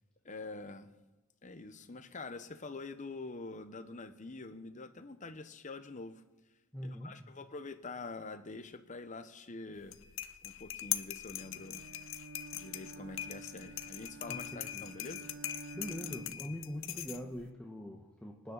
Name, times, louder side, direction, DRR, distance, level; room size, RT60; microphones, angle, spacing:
voice 1, 0.2-0.9 1.4-6.2 6.8-10.0 10.4-11.8 12.5-15.3, left 3 dB, 35° left, 10 dB, 0.9 m, -45 dB
voice 2, 6.7-7.3 14.3-14.8 15.7-18.5, equal, 5° left, 0 dB, 1.1 m, -43 dB
sound 1, 9.8-17.5, left 12 dB, 65° left, 0.7 m, -41 dB
Bowed string instrument, 11.3-16.6, right 3 dB, 65° right, 0.5 m, -51 dB
25.5 x 9.8 x 4.0 m, 1.1 s
head